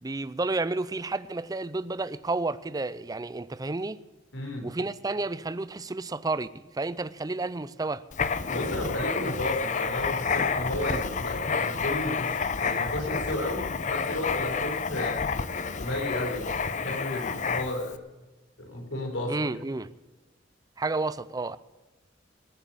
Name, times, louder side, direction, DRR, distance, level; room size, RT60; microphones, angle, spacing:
voice 1, 0.0-4.0 4.6-8.0 19.3-19.9 20.8-21.6, right 3 dB, 20° right, 0.5 m, -31 dB
voice 2, 4.3-4.7 8.5-15.2 15.8-17.9 18.6-19.4, left 1 dB, 85° left, 4.1 m, -33 dB
Writing, 8.1-17.9, left 5 dB, 40° left, 0.7 m, -29 dB
20.0 x 8.3 x 7.0 m
head